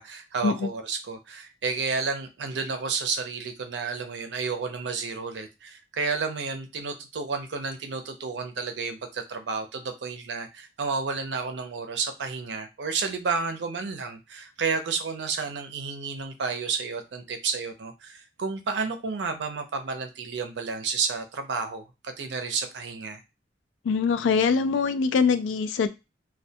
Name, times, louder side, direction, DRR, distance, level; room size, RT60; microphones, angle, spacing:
voice 1, 0.0-23.2, right 5 dB, 65° right, 7 dB, 0.5 m, -31 dB
voice 2, 23.8-25.9, left 5 dB, 85° left, 12 dB, 0.3 m, -23 dB
2.2 x 2.1 x 2.6 m, 0.25 s
head